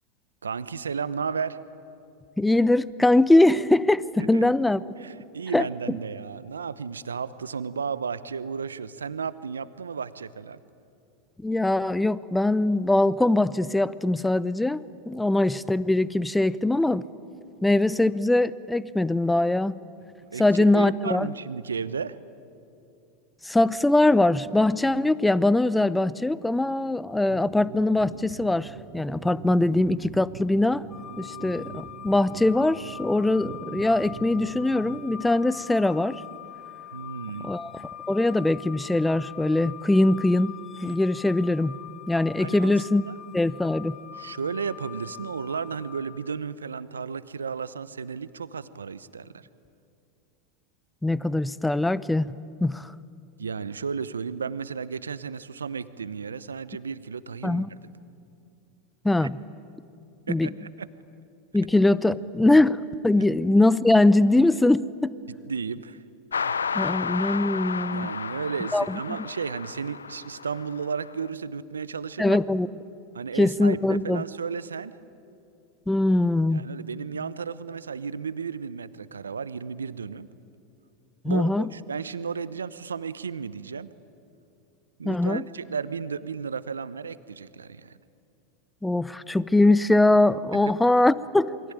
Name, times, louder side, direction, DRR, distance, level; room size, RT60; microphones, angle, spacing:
voice 1, 0.4-1.6 4.3-4.5 5.0-10.6 20.3-22.1 36.9-37.5 42.4-42.7 43.1-43.2 44.1-49.5 53.4-57.7 59.2-59.3 60.3-60.9 65.3-66.0 66.4-66.5 67.9-72.4 73.1-74.9 76.5-80.3 81.2-83.9 85.0-88.0, right 6 dB, 85° right, 15 dB, 0.9 m, -33 dB
voice 2, 2.4-4.8 5.5-5.7 11.4-17.0 17.6-19.8 20.4-21.3 23.4-30.8 31.2-36.2 37.4-37.7 38.1-40.6 40.8-41.8 42.1-43.0 43.3-43.9 51.0-52.4 52.6-52.9 57.4-57.7 59.0-59.4 60.3-60.5 61.5-65.1 66.7-68.1 68.7-69.0 72.2-72.7 73.4-74.2 75.9-76.6 81.2-81.7 85.0-85.4 88.8-91.5, left 2 dB, 5° left, 18 dB, 0.8 m, -22 dB
sound 1, 27.3-35.2, right 9 dB, 65° right, 2.7 m, -43 dB
sound 2, 30.9-46.0, left 11 dB, 25° left, 2.3 m, -43 dB
sound 3, 66.3-71.1, left 6 dB, 85° left, 0.6 m, -32 dB
28.0 x 23.0 x 9.2 m, 2.6 s
hypercardioid pair, 90°, 0 cm